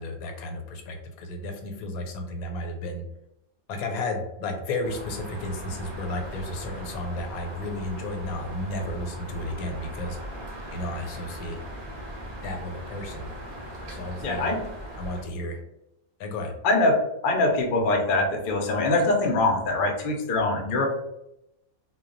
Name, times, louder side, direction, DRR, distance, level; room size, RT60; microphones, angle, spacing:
voice 1, 0.0-3.0 3.7-10.2 10.7-11.6 12.4-13.3 13.9-14.5 15.0-15.6 16.2-16.5, left 1 dB, 90° left, 3 dB, 1.1 m, -33 dB
sound 1, 4.8-15.2, equal, 45° right, 0.8 m, -39 dB
voice 2, 14.2-14.6 16.6-20.9, left 2 dB, 60° left, 1 dB, 0.5 m, -23 dB
2.2 x 2.2 x 3.7 m, 0.85 s
omnidirectional pair, 1.5 m